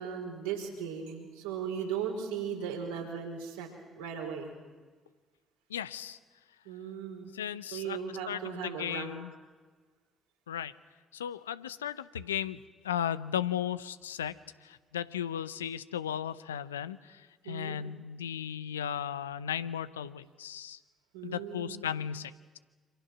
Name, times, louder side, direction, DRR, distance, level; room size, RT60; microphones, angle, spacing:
voice 1, 0.0-3.7 4.0-4.5 6.6-7.3 7.7-9.1 17.4-17.8 21.1-21.9, right 7 dB, 80° right, 2 dB, 4.8 m, -37 dB
voice 2, 5.7-6.2 7.3-8.0 8.3-9.3 10.5-10.7 11.1-12.6 12.8-14.3 14.6-20.8 21.2-22.6, left 9 dB, 85° left, 15 dB, 0.7 m, -36 dB
28.0 x 26.5 x 6.1 m, 1.4 s
figure-of-eight pair, 45°, 0 cm